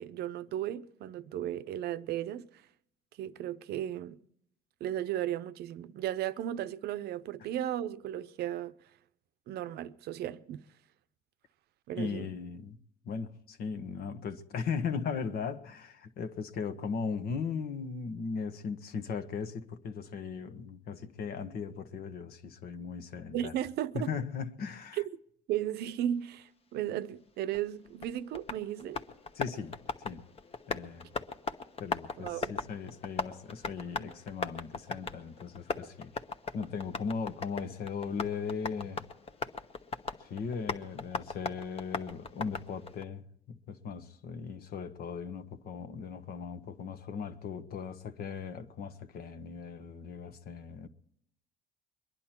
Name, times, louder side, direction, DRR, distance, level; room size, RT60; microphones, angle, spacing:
voice 1, 0.0-2.6 3.2-4.2 4.8-8.7 9.5-10.6 11.9-12.3 23.3-24.1 25.5-29.0 32.2-32.5, right 11 dB, 70° right, 0.7 m, -35 dB
voice 2, 11.9-12.8 13.0-23.5 23.9-25.0 29.3-30.3 30.7-31.1 31.8-36.2 36.5-39.0 40.2-50.9, left 5 dB, 65° left, 1.3 m, -38 dB
Tap, 27.5-43.0, left 4 dB, 35° left, 1.0 m, -40 dB
23.0 x 10.5 x 4.4 m
cardioid pair, 110°, 17 cm